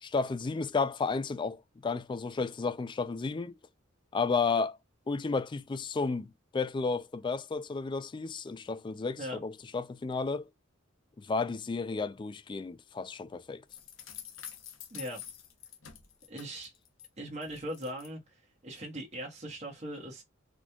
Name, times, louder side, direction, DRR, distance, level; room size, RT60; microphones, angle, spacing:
voice 1, 0.0-3.5 4.1-4.8 5.1-10.5 11.2-13.6, left 4 dB, 25° left, 0.3 m, -32 dB
sound 1, 13.7-17.1 17.4-18.1, left 9 dB, 70° left, 0.8 m, -47 dB
voice 2, 14.9-15.2 16.3-16.7 17.2-20.2, equal, 35° right, 1.3 m, -40 dB
4.1 x 3.0 x 2.3 m
head